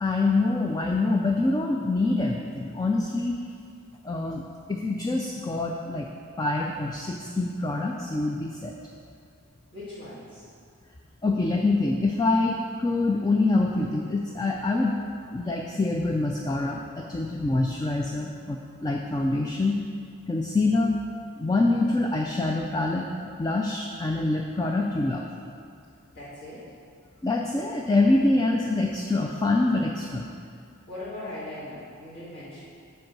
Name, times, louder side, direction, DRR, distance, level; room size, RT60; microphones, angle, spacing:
voice 1, 0.0-3.4 4.0-4.4 4.7-6.1 6.4-8.8 11.2-14.9 15.3-19.8 20.3-21.0 21.4-25.2 27.2-30.3, left 2 dB, 20° left, 1 dB, 0.3 m, -25 dB
voice 2, 9.7-10.5 26.1-26.6 30.9-32.6, left 1 dB, 45° left, -12 dB, 2.1 m, -39 dB
7.9 x 4.6 x 6.0 m, 2.4 s
head